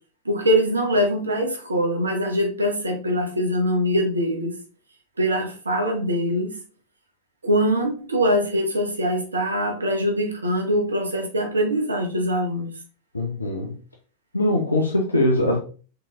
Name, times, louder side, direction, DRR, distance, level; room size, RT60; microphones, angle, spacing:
voice 1, 0.2-4.6 5.2-6.6 7.4-12.7, equal, 75° right, 1.0 m, -23 dB
voice 2, 13.1-13.7 14.3-15.6, left 1 dB, 80° left, 0.6 m, -21 dB
4.6 x 3.8 x 2.4 m
figure-of-eight pair, 90°, 0 cm